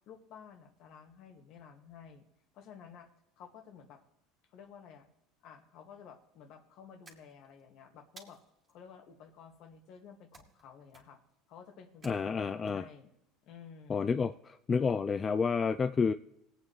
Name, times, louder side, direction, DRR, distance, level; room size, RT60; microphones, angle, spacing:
voice 1, 0.1-2.3 2.5-3.1 3.4-4.0 4.5-5.1 5.4-8.4 8.7-11.2 11.5-13.1 13.4-14.2, left 7 dB, 55° left, 5 dB, 1.9 m, -53 dB
sound 1, 7.0-7.6 8.2-8.7 10.3-10.6 10.9-11.3 12.0-12.7, right 3 dB, 20° right, 2.3 m, -57 dB
voice 2, 12.0-12.9 13.9-16.1, left 5 dB, 25° left, 10 dB, 0.4 m, -30 dB
20.5 x 8.5 x 3.2 m, 0.85 s
supercardioid pair, 125°, 0 cm